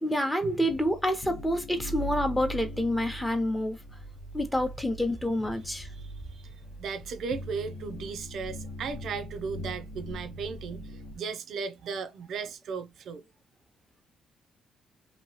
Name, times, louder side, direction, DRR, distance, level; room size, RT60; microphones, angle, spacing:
voice 1, 0.0-3.8 4.3-5.9, equal, 5° left, 0.8 m, -28 dB
sound 1, 0.6-11.2, right 1 dB, 70° left, 0.9 m, -41 dB
voice 2, 5.8-13.3, right 5 dB, 65° right, 0.5 m, -36 dB
3.0 x 2.7 x 2.8 m
cardioid pair, 125°, 0 cm